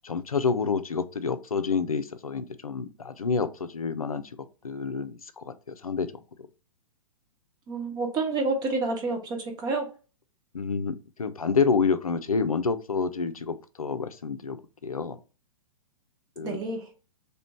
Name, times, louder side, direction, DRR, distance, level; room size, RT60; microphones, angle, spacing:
voice 1, 0.0-4.2 4.6-6.1 10.5-14.6 14.8-15.2 16.4-16.6, left 5 dB, 80° left, 0.5 m, -28 dB
voice 2, 7.7-9.9 16.4-16.8, right 3 dB, 20° right, 1.0 m, -29 dB
3.3 x 3.0 x 4.2 m
figure-of-eight pair, 110°, 18 cm